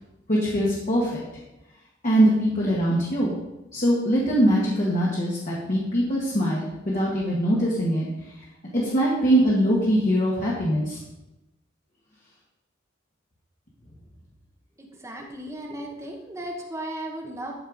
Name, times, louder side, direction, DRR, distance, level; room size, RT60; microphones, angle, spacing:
voice 1, 0.3-1.2 2.0-3.3 3.7-8.1 8.7-11.0, equal, 45° left, -5 dB, 1.9 m, -22 dB
voice 2, 15.0-17.5, right 1 dB, 15° right, 0 dB, 1.2 m, -35 dB
13.0 x 4.6 x 5.2 m, 0.97 s
head